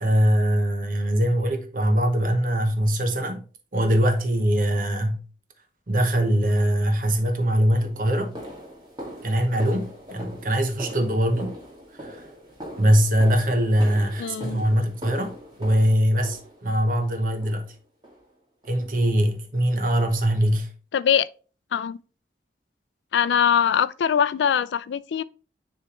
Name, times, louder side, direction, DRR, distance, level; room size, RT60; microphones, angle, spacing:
voice 1, 0.0-3.5 3.7-5.2 5.9-8.4 9.2-11.6 12.0-12.2 12.8-17.7 18.6-20.7, equal, 50° right, 1.0 m, -22 dB
sound 1, 7.0-7.2 7.7-16.9 17.4-17.8 18.0-18.2 18.6-18.8 19.2-19.3 19.9-20.0, equal, 25° right, 1.6 m, -41 dB
voice 2, 14.2-14.6 20.9-21.3 21.7-22.0 23.1-25.2, left 8 dB, 85° left, 0.3 m, -22 dB
9.8 x 3.4 x 3.0 m
head